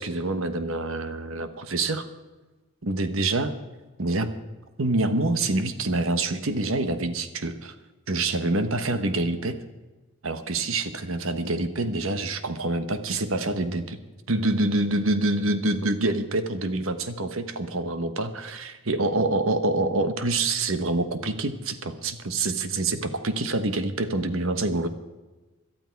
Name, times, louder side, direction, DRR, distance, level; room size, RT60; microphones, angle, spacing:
voice 1, 0.0-2.1 2.8-3.5 4.0-4.3 4.8-7.7 8.1-9.6 10.2-14.0 14.3-24.9, right 2 dB, 70° right, 10 dB, 1.2 m, -26 dB
18.0 x 12.0 x 4.6 m, 1.2 s
head